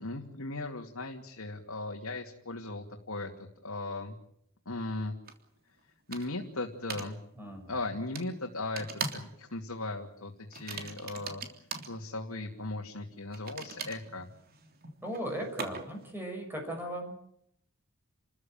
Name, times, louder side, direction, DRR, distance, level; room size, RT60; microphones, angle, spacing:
voice 1, 0.0-3.3 3.6-4.1 4.7-5.1 6.1-7.2 7.7-8.9 9.1-11.4 11.9-14.3, left 2 dB, 85° left, 2 dB, 2.6 m, -37 dB
sound 1, 5.3-5.4 6.1-6.5 6.9-7.1 8.2-8.3 8.8-9.3 9.6-9.9 10.5-11.9 13.3-16.1, right 5 dB, 45° right, 3.3 m, -40 dB
voice 2, 7.3-7.9 15.0-17.2, right 1 dB, 10° right, 2 dB, 6.3 m, -38 dB
30.0 x 14.5 x 9.0 m, 0.72 s
head